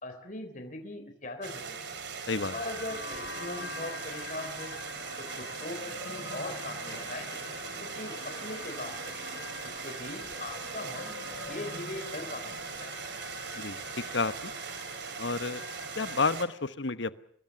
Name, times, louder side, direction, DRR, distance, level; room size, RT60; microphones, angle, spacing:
voice 1, 0.0-1.8 2.5-4.7 5.2-5.8 6.0-7.3 7.8-9.2 9.6-12.5 12.8-12.9, left 2 dB, 45° left, 6 dB, 3.6 m, -40 dB
sound 1, 1.4-16.5, right 5 dB, 60° right, 3.1 m, -40 dB
sound 2, 2.3-16.2, left 3 dB, 85° left, 6.4 m, -45 dB
sound 3, 5.3-10.6, left 2 dB, 20° left, 4.8 m, -55 dB
voice 2, 13.5-14.5 15.2-15.6 16.0-17.2, left 4 dB, 65° left, 13 dB, 1.1 m, -31 dB
25.5 x 21.0 x 7.1 m, 0.64 s
head